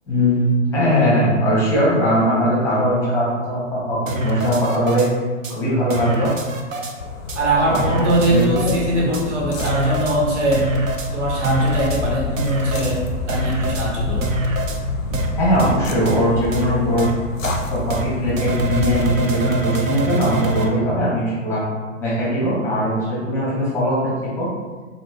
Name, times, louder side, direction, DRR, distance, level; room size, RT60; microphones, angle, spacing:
voice 1, 0.1-5.1 5.5-6.3 7.6-8.7 15.4-17.1 17.7-21.6 22.0-22.9 23.2-24.0 24.4-24.5, equal, 5° left, -7 dB, 0.5 m, -20 dB
sound 1, 4.1-5.1 5.4-5.5 5.9-6.9 7.3-7.4 7.7-8.8 9.1-9.2 9.6-10.2 10.5-11.1 11.4-12.0 12.4-12.9 13.3-13.8 14.2-14.8 15.1-15.3 15.6-15.7 16.1-16.2 16.5-16.6 17.0-17.1 17.4-17.6 17.9-18.0 18.4-20.7, right 2 dB, 85° right, 0.5 m, -24 dB
sound 2, 7.0-19.2, left 3 dB, 85° left, 0.5 m, -28 dB
voice 2, 7.3-10.7 11.1-14.3, right 1 dB, 60° right, -4 dB, 0.9 m, -21 dB
2.6 x 2.0 x 3.2 m, 1.4 s
figure-of-eight pair, 110°, 39 cm